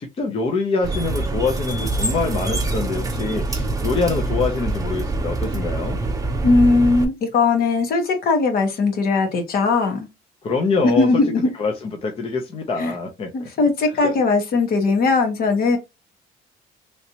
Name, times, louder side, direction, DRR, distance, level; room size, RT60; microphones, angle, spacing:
voice 1, 0.0-6.0 10.4-11.2 11.5-13.5 13.9-14.2, left 4 dB, 35° left, 0.7 m, -25 dB
sound 1, 0.8-7.1, right 2 dB, 20° right, 0.8 m, -25 dB
voice 2, 6.4-10.1 11.0-11.5 12.8-12.9 13.3-15.8, left 3 dB, 60° left, 1.2 m, -19 dB
3.2 x 2.7 x 2.8 m
cardioid pair, 110°, 17 cm